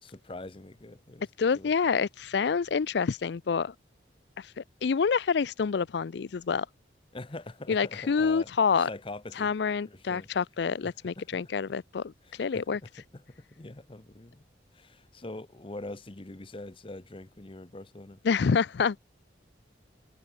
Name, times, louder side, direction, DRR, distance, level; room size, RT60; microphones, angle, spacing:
voice 1, 0.0-1.3 1.5-1.7 7.1-8.5 8.8-9.5 9.9-10.3 10.8-11.4 12.2-14.5 14.7-18.2, left 2 dB, 30° left, 0.9 m, -44 dB
voice 2, 1.4-3.7 4.4-6.7 7.7-8.9 9.4-12.1 12.4-12.8 18.2-19.0, left 5 dB, 65° left, 0.4 m, -27 dB
head